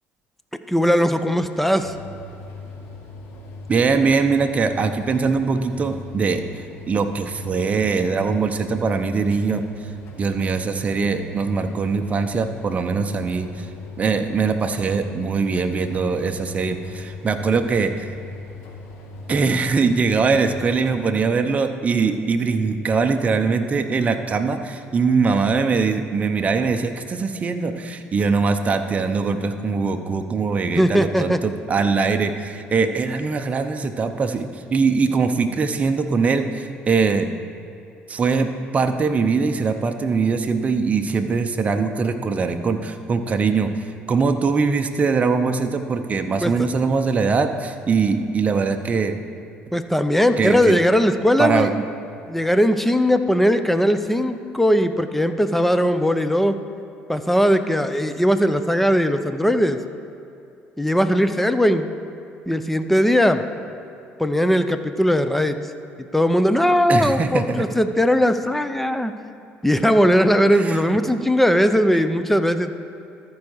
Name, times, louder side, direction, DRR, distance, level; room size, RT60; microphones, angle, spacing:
voice 1, 0.7-1.9 30.8-31.4 46.4-46.5 49.7-51.7 52.3-56.6 57.1-59.8 60.8-61.9 62.5-63.4 64.2-65.6 66.1-69.1 69.6-72.7, equal, 5° left, 9 dB, 0.6 m, -19 dB
sound 1, 1.8-20.9, left 3 dB, 75° left, 1.6 m, -39 dB
voice 2, 3.7-6.4 6.9-9.6 10.2-13.7 14.0-18.1 19.3-37.3 38.1-49.2 50.4-50.8 51.4-51.7 66.9-67.7 70.5-70.8 71.9-72.0, right 4 dB, 30° right, 6 dB, 0.7 m, -22 dB
13.0 x 4.8 x 6.2 m, 2.7 s
supercardioid pair, 85°, 4 cm